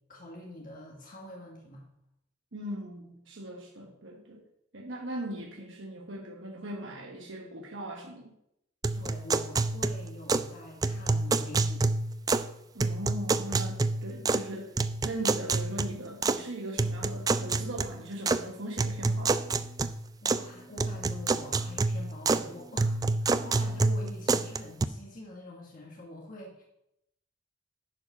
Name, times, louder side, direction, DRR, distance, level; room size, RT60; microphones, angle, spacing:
voice 1, 0.1-1.9 8.9-11.8 20.2-26.6, left 1 dB, 45° left, -2 dB, 1.5 m, -45 dB
voice 2, 2.5-4.4 4.7-8.3 12.7-14.7 15.0-19.4, right 1 dB, 80° right, 0 dB, 1.2 m, -39 dB
sound 1, 8.8-10.5 10.8-12.5 12.8-14.5 14.8-16.4 16.8-18.4 18.8-20.5 20.8-22.5 22.8-24.8, right 3 dB, 20° right, 0.3 m, -28 dB
10.5 x 4.9 x 5.4 m, 0.81 s
head